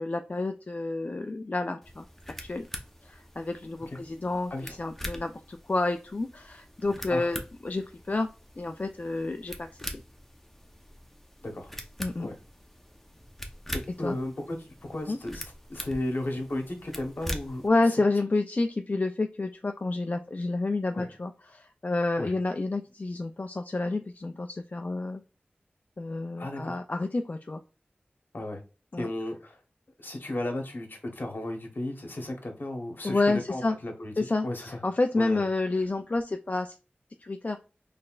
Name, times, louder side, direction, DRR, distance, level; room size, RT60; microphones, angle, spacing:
voice 1, 0.0-2.1 2.4-2.6 3.0-8.3 8.6-9.8 12.0-12.3 14.0-14.2 15.1-15.2 17.6-25.2 26.0-27.6 28.9-29.1 33.0-33.8 34.2-36.8 37.2-37.6, left 2 dB, 45° left, 6 dB, 0.3 m, -29 dB
sound 1, 1.8-17.7, equal, 5° left, 0.7 m, -43 dB
voice 2, 11.4-11.7 12.2-12.3 13.7-17.6 20.9-21.1 22.2-22.3 26.4-26.8 28.3-28.6 29.0-29.6 30.0-34.8 35.2-35.4, left 1 dB, 65° left, 3 dB, 1.0 m, -34 dB
4.1 x 3.2 x 2.4 m, 0.32 s
wide cardioid pair, 50°, 4 cm